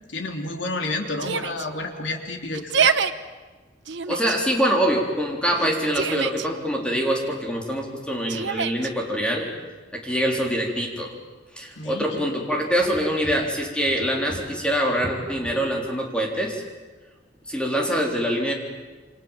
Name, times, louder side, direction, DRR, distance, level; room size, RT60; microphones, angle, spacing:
voice 1, 0.1-2.9 11.8-12.2, left 2 dB, 80° left, 3 dB, 3.4 m, -30 dB
Yell, 1.2-1.7 2.5-3.1 3.9-4.4 5.6-6.5 8.3-8.9, right 6 dB, 65° right, 1.0 m, -25 dB
voice 2, 4.1-9.5 9.9-11.1 11.5-16.6 17.5-18.5, equal, 5° left, 0 dB, 3.9 m, -24 dB
28.0 x 26.0 x 7.4 m, 1.3 s
head